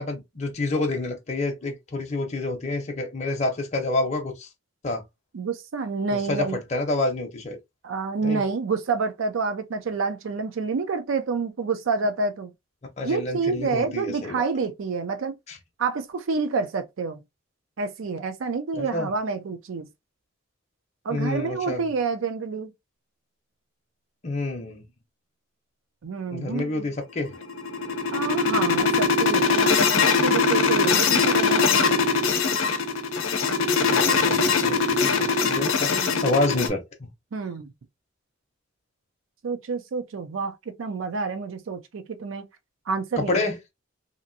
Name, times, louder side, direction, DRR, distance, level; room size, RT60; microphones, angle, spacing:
voice 1, 0.0-4.5 4.8-5.0 6.3-7.6 8.2-8.4 13.0-14.4 15.5-15.6 18.7-19.1 21.1-21.8 24.2-24.8 26.3-27.3 33.9-36.8 43.2-43.6, left 2 dB, 35° left, 0.6 m, -28 dB
voice 2, 5.3-6.6 7.8-12.5 13.0-15.4 15.8-17.2 17.8-19.9 21.0-22.7 26.0-26.9 28.1-32.0 35.9-36.3 37.3-37.7 39.4-42.4 42.9-43.3, right 4 dB, 80° right, 0.4 m, -28 dB
sound 1, 27.3-36.7, left 5 dB, 85° left, 0.6 m, -21 dB
2.8 x 2.5 x 2.5 m
head